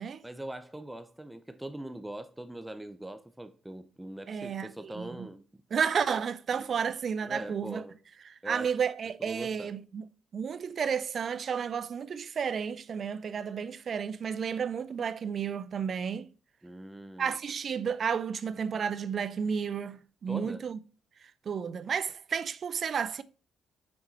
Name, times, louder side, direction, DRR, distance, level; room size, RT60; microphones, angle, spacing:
voice 1, 0.2-5.4 6.5-6.7 7.2-8.0 8.4-8.7 9.2-9.7 16.6-17.4 20.3-20.6, right 1 dB, 10° right, 0.6 m, -42 dB
voice 2, 4.3-5.3 5.7-7.8 8.3-10.0 10.3-16.3 17.2-20.8 21.5-23.2, right 7 dB, 50° right, 0.5 m, -32 dB
6.4 x 4.3 x 4.1 m
cardioid pair, 90°, 0 cm